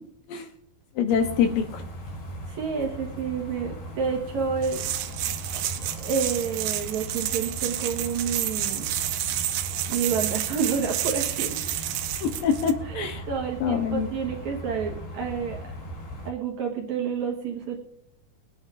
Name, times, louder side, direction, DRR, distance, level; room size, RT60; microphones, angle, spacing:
voice 1, 1.0-1.8 12.2-13.2 13.6-14.1, left 7 dB, 75° left, 6 dB, 2.3 m, -25 dB
sound 1, 1.1-16.3, equal, 60° left, 3.8 m, -38 dB
voice 2, 2.5-4.8 5.8-8.8 9.9-11.7 12.9-15.6 16.3-17.8, right 6 dB, 60° right, 0 dB, 2.2 m, -29 dB
sound 2, 4.6-12.7, right 12 dB, 90° right, 2.6 m, -30 dB
23.0 x 9.6 x 2.5 m, 0.71 s
omnidirectional pair, 4.5 m